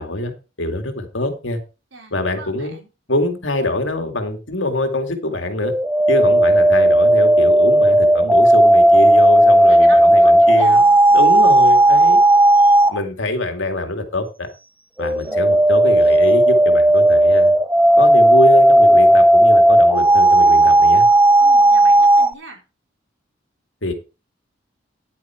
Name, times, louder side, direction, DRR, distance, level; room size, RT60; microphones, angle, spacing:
voice 1, 0.0-1.6 2.1-2.8 3.1-5.7 6.1-10.8 11.1-12.2 12.9-14.5 15.0-17.5 18.0-21.1 23.8-23.9, left 1 dB, 75° left, 5 dB, 2.4 m, -24 dB
voice 2, 1.9-2.9 9.4-11.0 15.2-15.6 21.4-22.6, right 2 dB, 85° right, 2 dB, 4.0 m, -40 dB
sound 1, 5.6-13.0 15.0-22.3, right 1 dB, 10° right, 0.4 m, -12 dB
10.5 x 8.4 x 4.5 m, 0.30 s
head